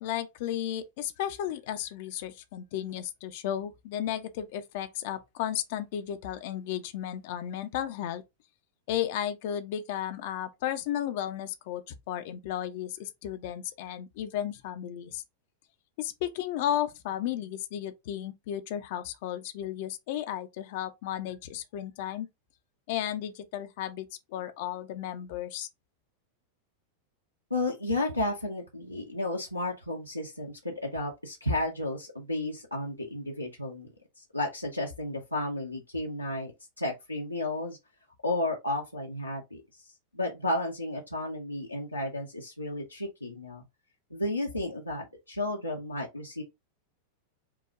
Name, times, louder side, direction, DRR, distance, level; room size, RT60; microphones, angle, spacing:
voice 1, 0.0-8.2 8.9-15.2 16.0-22.3 22.9-25.7, left 11 dB, 50° left, 0.5 m, -34 dB
voice 2, 27.5-37.8 38.2-39.6 40.1-43.6 44.1-46.4, left 1 dB, 85° left, 0.8 m, -33 dB
4.7 x 2.3 x 3.6 m
figure-of-eight pair, 90°, 0 cm